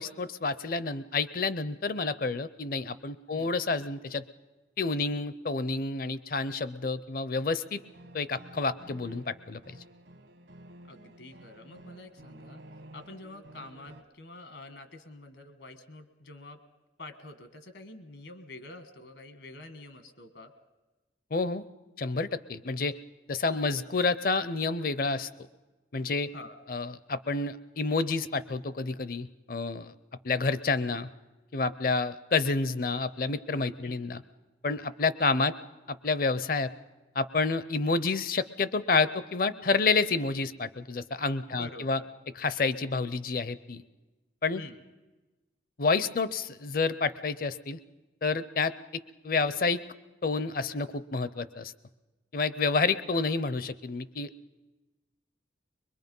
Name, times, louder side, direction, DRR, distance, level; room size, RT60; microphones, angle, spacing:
voice 1, 0.0-4.2 4.8-7.8 8.1-9.8 21.3-21.6 22.0-23.0 23.3-25.3 25.9-26.3 26.7-29.9 30.2-31.1 31.5-34.2 34.6-35.5 35.9-36.7 37.2-42.0 42.4-43.8 44.4-44.6 45.8-47.8 48.2-48.7 49.2-49.8 50.2-51.7 52.3-54.3, left 4 dB, 50° left, 15 dB, 0.6 m, -29 dB
sound 1, 7.7-14.0, right 1 dB, 70° right, 1.2 m, -52 dB
voice 2, 10.9-12.6 12.9-16.6 17.0-20.5 23.5-23.7 26.3-26.6 33.8-34.0 41.6-42.1 44.5-44.8 53.1-53.3, left 2 dB, 75° left, 9 dB, 1.4 m, -47 dB
22.5 x 21.5 x 5.4 m, 1.2 s
head